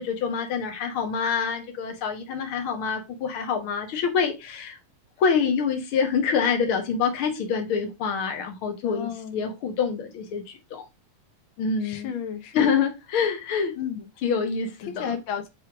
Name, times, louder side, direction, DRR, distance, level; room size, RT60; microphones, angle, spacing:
voice 1, 0.0-4.8 5.2-10.8 11.6-12.2 12.5-13.7 14.2-15.2, left 6 dB, 50° left, 1.8 m, -26 dB
voice 2, 8.8-9.4 11.8-12.7 13.8-14.1 14.9-15.5, left 8 dB, 70° left, 1.2 m, -32 dB
6.3 x 3.5 x 4.7 m
omnidirectional pair, 3.6 m